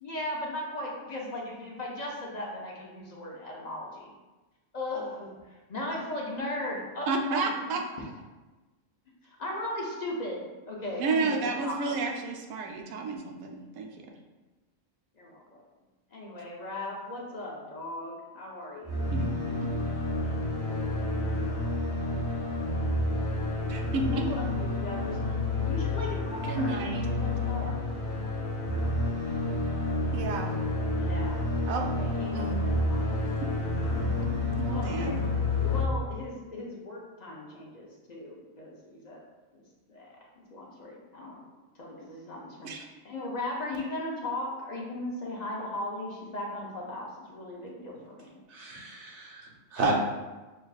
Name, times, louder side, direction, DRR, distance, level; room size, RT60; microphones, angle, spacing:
voice 1, 0.0-4.1 4.7-7.5 9.2-11.9 15.2-15.6 16.1-19.2 19.5-19.6 24.1-27.8 31.0-31.4 32.0-33.2 34.0-34.3 34.6-35.2 35.6-39.2 39.9-40.2 40.5-41.5 41.8-48.4, left 1 dB, 50° left, -2 dB, 0.5 m, -37 dB
voice 2, 7.1-7.8 11.0-14.1 19.1-19.3 23.7-24.2 26.5-27.1 30.1-30.5 31.7-31.9 32.3-32.7 34.6-35.2 42.6-42.8 49.8-49.9, right 3 dB, 85° right, 2 dB, 1.0 m, -31 dB
sound 1, 18.8-35.8, left 2 dB, 20° left, 1.0 m, -29 dB
voice 3, 48.5-49.9, right 2 dB, 60° right, -2 dB, 1.0 m, -32 dB
6.3 x 2.4 x 2.3 m, 1.2 s
omnidirectional pair, 1.4 m